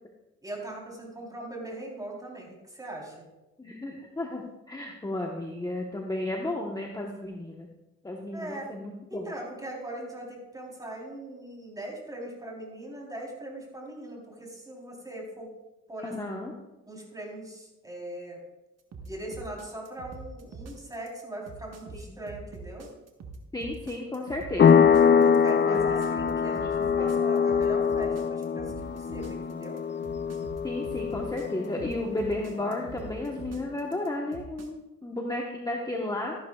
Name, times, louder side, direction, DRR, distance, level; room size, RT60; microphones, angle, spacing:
voice 1, 0.4-3.3 8.3-8.7 9.1-15.5 15.9-16.4 16.9-18.4 19.0-22.9 25.2-29.8, right 1 dB, 10° right, -2 dB, 3.7 m, -40 dB
voice 2, 3.6-7.7 8.0-9.3 16.0-16.5 23.5-24.9 25.7-26.0 26.7-27.1 30.6-36.4, left 1 dB, 15° left, 0 dB, 1.2 m, -33 dB
sound 1, 18.9-34.7, right 4 dB, 55° right, 1.5 m, -44 dB
sound 2, 24.6-32.9, left 7 dB, 35° left, 0.5 m, -24 dB
13.5 x 11.0 x 2.4 m, 0.99 s
cardioid pair, 90°, 30 cm